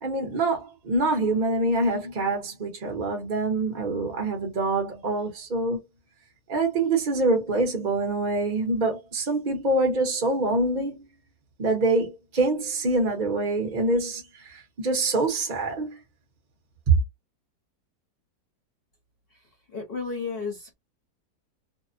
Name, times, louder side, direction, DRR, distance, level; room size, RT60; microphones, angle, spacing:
voice 1, 0.0-5.8 6.5-11.0 11.6-14.2 14.5-16.0 16.9-17.0, right 2 dB, 45° right, 0.6 m, -25 dB
voice 2, 19.7-20.7, left 4 dB, 45° left, 0.8 m, -32 dB
2.7 x 2.0 x 2.5 m
omnidirectional pair, 1.7 m